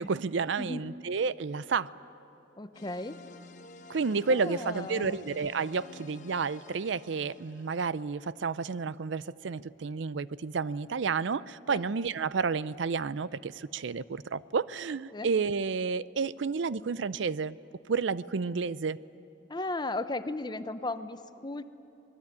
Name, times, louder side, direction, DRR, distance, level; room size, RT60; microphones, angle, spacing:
voice 1, 0.0-1.9 3.9-17.6 17.9-19.0, right 5 dB, 65° right, 18 dB, 0.5 m, -31 dB
voice 2, 2.6-3.2 4.3-5.2 11.7-11.8 15.1-15.3 19.5-21.6, left 2 dB, 20° left, 11 dB, 0.8 m, -35 dB
sound 1, 2.7-7.9, left 3 dB, 40° left, 1.2 m, -51 dB
26.0 x 20.5 x 9.6 m, 3.0 s
head